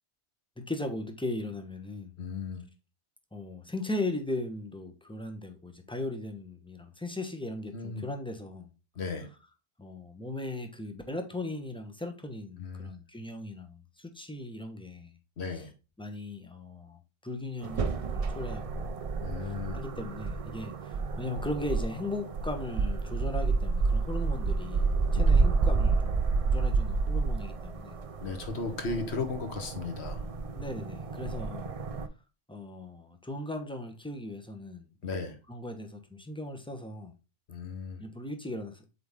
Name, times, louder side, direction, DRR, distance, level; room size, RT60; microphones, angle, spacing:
voice 1, 0.6-2.1 3.3-8.7 9.8-15.1 15.5-15.6 16.0-19.0 19.7-27.9 30.5-31.7 32.5-37.1 38.0-38.8, left 2 dB, 5° left, 0.9 m, -38 dB
voice 2, 2.2-2.6 7.7-8.0 9.0-9.3 12.6-12.9 15.4-15.7 19.2-19.8 28.2-30.2 35.0-35.4 37.5-38.0, left 4 dB, 80° left, 1.5 m, -35 dB
sound 1, 17.6-32.1, right 4 dB, 40° right, 0.6 m, -30 dB
8.0 x 3.8 x 3.5 m
omnidirectional pair, 1.1 m